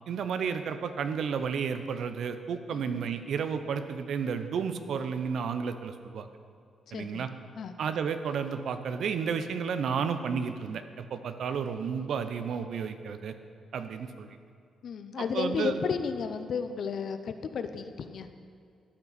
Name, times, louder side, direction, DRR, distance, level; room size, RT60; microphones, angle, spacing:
voice 1, 0.1-6.3 6.9-7.3 7.8-13.3 13.7-14.3 15.3-15.8, right 6 dB, 75° right, 9 dB, 0.5 m, -32 dB
voice 2, 6.9-7.3 7.6-7.7 14.8-18.3, left 6 dB, 70° left, 9 dB, 0.6 m, -33 dB
13.0 x 5.7 x 4.1 m, 2.3 s
cardioid pair, 70°, 0 cm